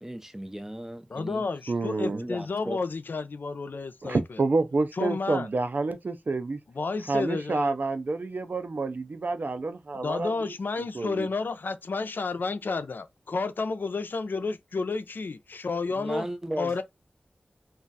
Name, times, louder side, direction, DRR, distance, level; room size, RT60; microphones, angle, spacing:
voice 1, 0.0-1.4 2.1-2.8 16.0-16.8, right 1 dB, 10° right, 0.6 m, -36 dB
voice 2, 1.1-4.4 4.9-5.5 6.7-7.8 9.9-16.2 16.6-16.8, left 4 dB, 70° left, 0.4 m, -31 dB
voice 3, 1.7-2.2 4.0-6.6 7.1-10.5 10.9-11.3, right 3 dB, 60° right, 0.4 m, -28 dB
2.4 x 2.3 x 3.9 m
cardioid pair, 50°, 3 cm